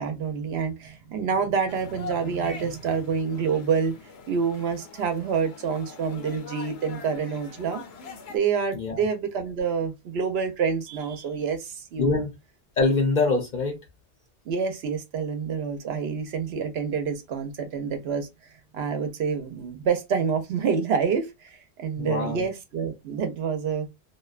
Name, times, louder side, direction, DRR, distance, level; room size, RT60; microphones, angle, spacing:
voice 1, 0.0-3.9 4.3-7.8 8.3-12.2 14.5-18.3 18.7-21.5 21.8-23.9, right 6 dB, 70° right, 0.9 m, -27 dB
sound 1, 1.7-8.4, left 5 dB, 75° left, 0.9 m, -43 dB
voice 2, 8.7-9.1 12.0-12.3 12.8-13.8 22.0-22.5, left 3 dB, 50° left, 0.6 m, -24 dB
2.6 x 2.2 x 2.3 m
omnidirectional pair, 1.1 m